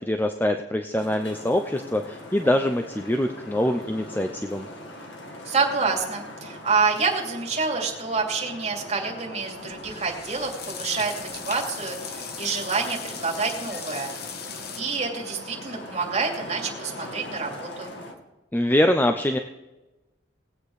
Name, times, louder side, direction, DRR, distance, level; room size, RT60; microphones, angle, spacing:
voice 1, 0.0-4.7 18.5-19.4, left 1 dB, 10° left, 6 dB, 0.6 m, -24 dB
Traffic noise roadway noise, 1.0-18.1, left 1 dB, 75° left, 2.0 m, -41 dB
voice 2, 5.5-14.1 14.8-17.9, right 4 dB, 40° right, -1 dB, 2.8 m, -27 dB
sound 1, 9.4-14.8, left 7 dB, 60° left, 1.1 m, -39 dB
18.5 x 8.8 x 4.9 m, 1.1 s
head